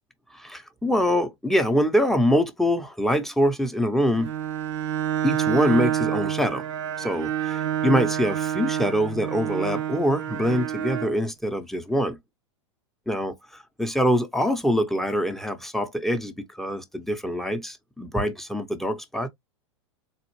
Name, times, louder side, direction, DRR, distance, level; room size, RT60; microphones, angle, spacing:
voice 1, 0.3-4.3 5.2-6.6 7.0-12.2 13.1-19.3, equal, ahead, 0.7 m, -24 dB
Bowed string instrument, 4.1-11.2, right 10 dB, 65° right, 0.8 m, -28 dB
4.0 x 2.5 x 3.0 m
hypercardioid pair, 100°, 16 cm